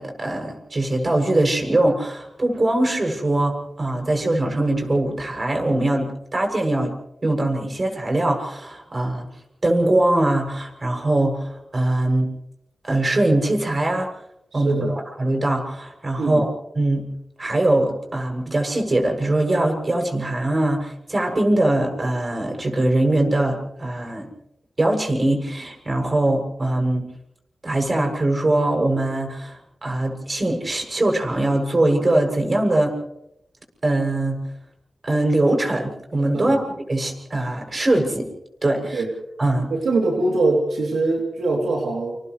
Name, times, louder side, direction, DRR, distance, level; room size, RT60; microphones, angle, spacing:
voice 1, 0.0-6.9 7.2-9.3 9.6-12.3 12.8-14.1 14.5-14.8 15.2-16.5 16.8-17.1 17.4-24.3 24.8-27.0 27.6-33.0 33.8-34.4 35.0-36.6 36.9-38.3 38.6-39.0 39.4-39.7, right 1 dB, 40° right, 3 dB, 7.4 m, -22 dB
voice 2, 14.5-15.0 16.2-16.4 36.3-36.6 38.9-39.1 39.7-42.2, right 2 dB, 85° right, -1 dB, 3.1 m, -22 dB
29.5 x 27.5 x 3.3 m, 0.81 s
cardioid pair, 55°, 0 cm